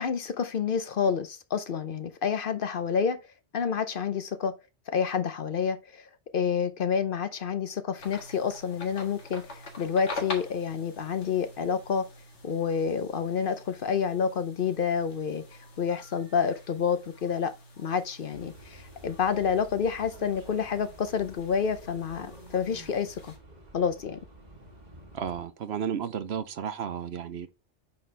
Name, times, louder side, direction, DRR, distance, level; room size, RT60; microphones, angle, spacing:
voice 1, 0.0-3.2 3.5-4.5 4.9-6.0 6.3-9.5 9.8-12.1 12.4-15.4 15.8-23.3 23.7-24.2, left 6 dB, 55° left, 0.8 m, -28 dB
sound 1, 8.0-23.4, left 2 dB, 80° left, 2.0 m, -45 dB
sound 2, 18.3-25.4, right 1 dB, 40° right, 1.7 m, -50 dB
voice 2, 25.1-27.5, right 8 dB, 65° right, 1.0 m, -33 dB
8.5 x 4.2 x 3.3 m
omnidirectional pair, 1.2 m